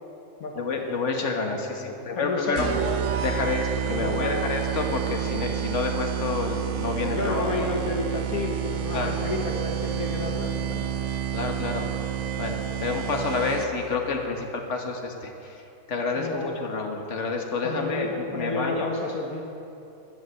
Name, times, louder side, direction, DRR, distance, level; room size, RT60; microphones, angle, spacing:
voice 1, 0.6-7.7 8.0-8.2 8.9-9.2 11.3-11.9 12.3-19.1, left 4 dB, 55° left, 2 dB, 1.8 m, -29 dB
voice 2, 1.5-2.8 4.0-4.4 7.0-10.9 16.2-16.5 17.6-19.4, left 3 dB, 70° left, 1 dB, 1.7 m, -31 dB
sound 1, 2.6-13.9, right 10 dB, 60° right, 1.0 m, -29 dB
16.0 x 10.5 x 7.8 m, 2.8 s
omnidirectional pair, 1.6 m